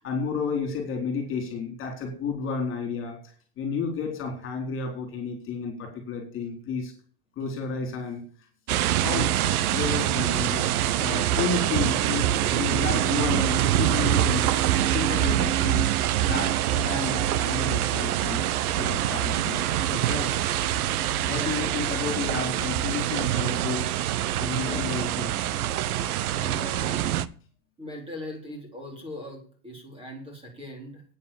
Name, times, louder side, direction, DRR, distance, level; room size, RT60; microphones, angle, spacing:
voice 1, 0.0-6.9 7.4-8.5 9.0-9.4 9.7-14.6 14.9-18.4 18.8-20.4 21.3-24.0 24.4-25.3, left 5 dB, 30° left, 4 dB, 4.2 m, -32 dB
sound 1, 8.7-27.3, right 12 dB, 85° right, 1.0 m, -25 dB
voice 2, 21.2-21.6 24.5-24.9 26.3-27.1 27.8-31.0, left 1 dB, 10° right, 2 dB, 4.1 m, -40 dB
9.6 x 9.5 x 7.1 m, 0.43 s
supercardioid pair, 150°, 43 cm